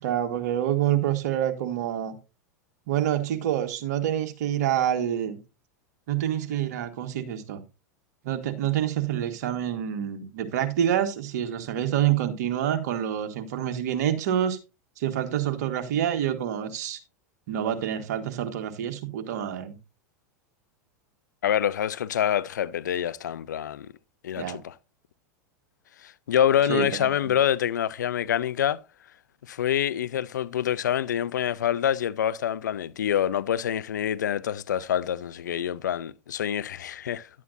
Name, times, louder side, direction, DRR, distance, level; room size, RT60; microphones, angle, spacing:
voice 1, 0.0-2.1 2.9-5.4 6.1-7.6 8.2-14.6 15.0-17.0 17.5-19.8 24.3-24.6 26.7-26.9, right 10 dB, 65° right, 1.4 m, -27 dB
voice 2, 21.4-23.9 24.2-24.7 26.0-28.8 29.4-37.3, left 10 dB, 80° left, 0.5 m, -26 dB
11.0 x 8.4 x 2.6 m
hypercardioid pair, 95°, 9 cm